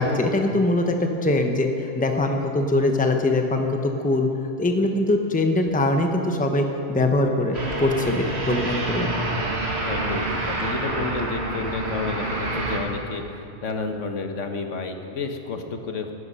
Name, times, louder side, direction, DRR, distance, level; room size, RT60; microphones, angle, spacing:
voice 1, 0.0-3.8 4.0-4.3 4.6-9.2, left 2 dB, 10° left, 4 dB, 0.8 m, -22 dB
sound 1, 7.5-12.8, right 2 dB, 60° right, 2.2 m, -27 dB
voice 2, 9.8-16.1, left 4 dB, 75° left, 5 dB, 1.4 m, -31 dB
17.0 x 11.5 x 5.5 m, 2.7 s
omnidirectional pair, 1.3 m